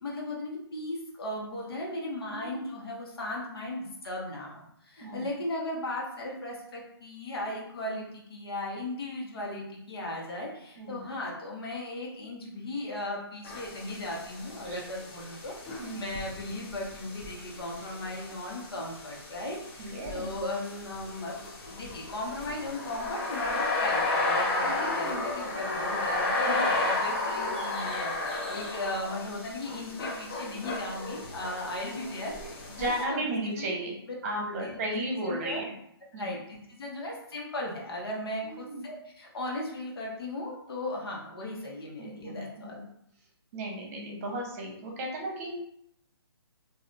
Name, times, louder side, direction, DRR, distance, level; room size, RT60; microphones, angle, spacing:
voice 1, 0.0-21.3 21.7-32.3 32.8-33.8 34.0-34.1 34.4-34.8 35.1-35.6 36.2-42.8, left 1 dB, 65° left, -3 dB, 1.2 m, -37 dB
voice 2, 2.3-2.6 5.0-5.3 10.8-11.1 14.6-14.8 15.8-16.1 19.8-20.3 24.6-25.2 26.4-26.7 32.8-34.0 34.2-35.7 36.1-36.4 38.4-38.9 42.0-42.7 43.5-45.5, right 1 dB, 35° right, 0 dB, 0.9 m, -35 dB
sound 1, 13.4-33.0, left 2 dB, 25° left, 0.7 m, -33 dB
3.1 x 2.6 x 2.6 m, 0.73 s
hypercardioid pair, 145°, 14 cm